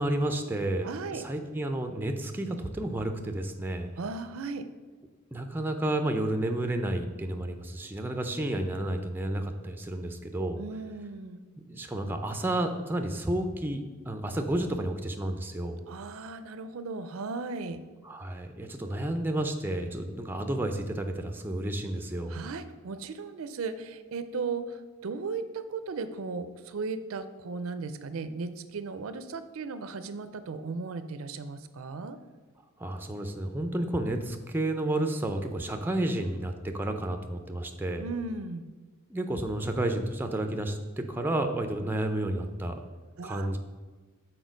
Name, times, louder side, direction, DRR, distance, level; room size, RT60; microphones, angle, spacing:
voice 1, 0.0-3.9 5.3-10.6 11.7-15.8 18.0-22.4 32.8-38.1 39.1-42.8 43.2-43.6, right 1 dB, 10° right, 5 dB, 0.4 m, -31 dB
voice 2, 0.8-1.2 4.0-4.7 10.6-11.4 15.9-17.8 22.3-32.2 38.0-38.7 43.2-43.6, right 4 dB, 75° right, 12 dB, 0.5 m, -36 dB
6.2 x 4.4 x 5.1 m, 1.3 s
head